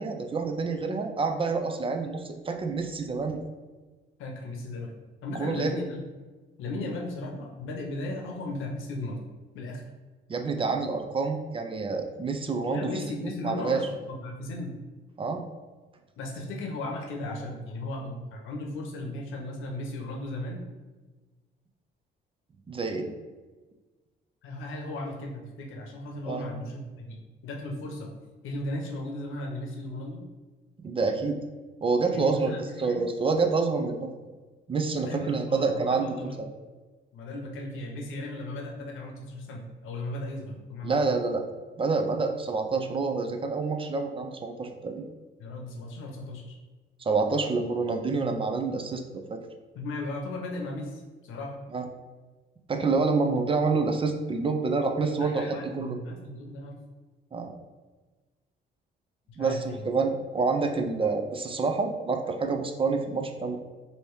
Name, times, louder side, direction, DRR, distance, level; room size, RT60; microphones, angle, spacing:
voice 1, 0.0-3.4 5.3-5.7 10.3-13.8 15.2-15.5 22.7-23.1 26.2-26.4 30.8-31.4 31.8-34.1 34.7-36.5 40.8-41.4 41.8-45.0 47.0-49.4 51.7-51.9 52.7-56.0 57.3-57.5 59.4-63.6, right 4 dB, 25° right, 5 dB, 0.5 m, -28 dB
voice 2, 4.2-5.0 5.2-6.0 6.6-9.2 9.5-9.8 12.7-14.8 16.2-20.7 24.4-27.2 27.4-28.1 28.4-30.3 32.1-33.1 35.0-36.4 37.1-41.1 45.4-46.5 49.7-51.6 55.2-56.8 59.3-59.9, left 2 dB, 85° left, 0 dB, 0.8 m, -36 dB
3.2 x 2.8 x 4.6 m, 1.3 s
cardioid pair, 90°, 20 cm